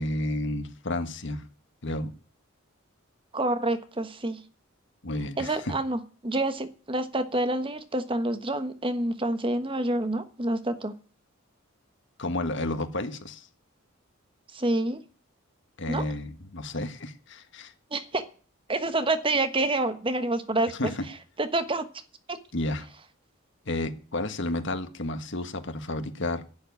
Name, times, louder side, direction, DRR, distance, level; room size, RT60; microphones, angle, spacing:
voice 1, 0.0-1.4 1.8-2.1 5.0-5.7 12.2-13.5 15.8-17.7 20.8-21.0 22.5-22.9 23.6-26.4, left 1 dB, 60° left, 9 dB, 1.5 m, -31 dB
voice 2, 3.3-4.4 5.4-10.9 14.5-15.0 15.9-16.0 17.9-18.2 18.7-20.9 21.4-21.8 22.3-22.4, right 2 dB, 25° right, 10 dB, 1.2 m, -27 dB
11.5 x 7.1 x 9.6 m, 0.39 s
head